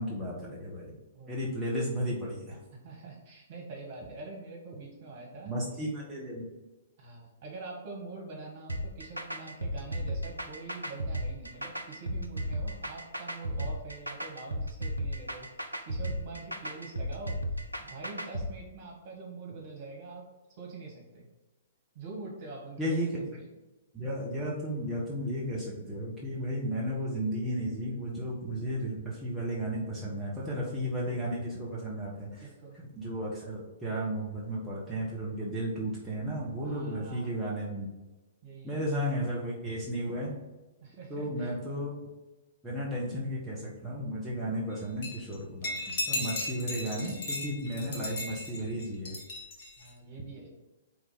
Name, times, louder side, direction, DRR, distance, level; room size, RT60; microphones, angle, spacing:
voice 1, 0.0-0.9 1.3-2.6 5.4-6.5 22.8-23.2 23.9-32.4 33.0-37.9 38.6-40.3 41.1-41.9 42.6-49.2, equal, 5° right, -7 dB, 1.4 m, -34 dB
voice 2, 2.7-5.9 7.0-17.4 17.8-20.2 20.6-21.3 21.9-23.0 32.4-32.8 36.6-37.4 38.4-38.8 40.8-41.5 49.8-50.5, right 3 dB, 45° right, -1 dB, 2.0 m, -45 dB
sound 1, 8.7-18.5, equal, 90° right, 0.6 m, -35 dB
sound 2, 45.0-45.4 45.6-49.9, left 2 dB, 45° left, 1.5 m, -36 dB
4.9 x 3.9 x 5.5 m, 1.1 s
figure-of-eight pair, 115°, 0 cm